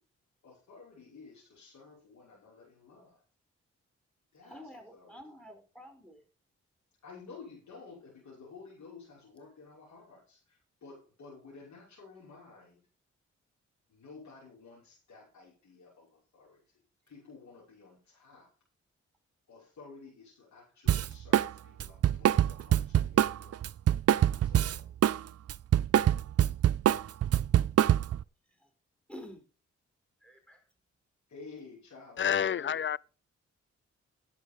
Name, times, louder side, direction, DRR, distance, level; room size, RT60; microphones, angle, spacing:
voice 1, 0.4-3.2 4.3-4.6 4.9-5.2 7.0-12.8 13.9-16.6 17.1-18.5 19.5-23.5 24.2-24.9 31.3-32.8, left 4 dB, 75° left, 6.0 m, -52 dB
voice 2, 4.4-6.3 28.4-28.7 29.1-29.5 30.2-30.7, equal, 5° left, 4.6 m, -49 dB
Drum kit, 20.9-21.5 21.8-25.2 25.5-28.2, right 11 dB, 55° right, 0.5 m, -24 dB
voice 3, 32.2-33.0, left 8 dB, 40° left, 0.4 m, -28 dB
10.5 x 8.1 x 5.4 m
supercardioid pair, 45°, 29 cm